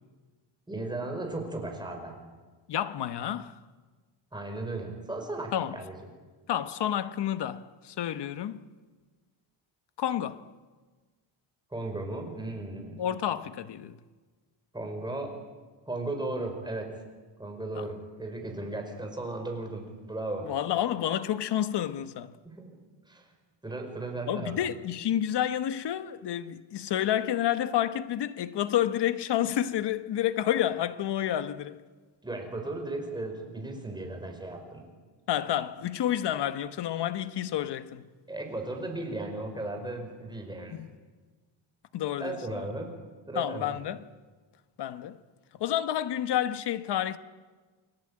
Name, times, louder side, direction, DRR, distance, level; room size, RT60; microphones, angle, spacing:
voice 1, 0.7-2.2 4.3-5.9 11.7-13.0 14.7-15.3 15.9-16.9 17.4-20.5 22.4-22.8 23.1-23.3 23.6-24.6 32.2-34.9 38.3-40.8 42.2-42.9 43.3-43.7, right 2 dB, 10° right, 5.1 m, -36 dB
voice 2, 2.7-3.6 5.5-5.8 6.5-8.7 10.0-10.4 13.0-14.0 17.7-17.9 20.4-22.3 24.3-31.8 35.3-38.0 40.8-40.9 41.9-42.6 43.3-44.0 44.8-45.2 45.5-47.2, left 11 dB, 60° left, 1.3 m, -29 dB
29.5 x 21.0 x 8.8 m
cardioid pair, 155°, 46 cm